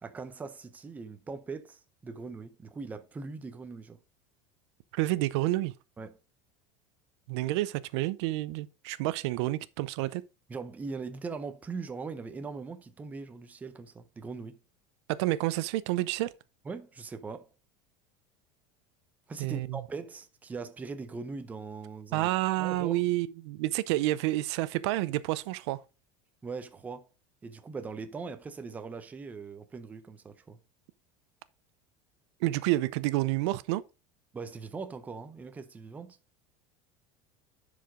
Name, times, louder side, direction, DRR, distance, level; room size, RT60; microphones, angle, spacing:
voice 1, 0.0-4.0 6.0-6.2 10.5-14.6 16.7-17.5 19.3-22.3 22.6-23.0 26.4-27.1 27.4-30.6 34.3-36.2, right 4 dB, 10° right, 0.6 m, -40 dB
voice 2, 4.9-5.7 7.3-10.2 15.1-16.3 19.4-19.8 22.1-25.8 32.4-33.8, right 17 dB, 70° right, 0.6 m, -29 dB
10.5 x 4.9 x 3.7 m
cardioid pair, 175°, 15 cm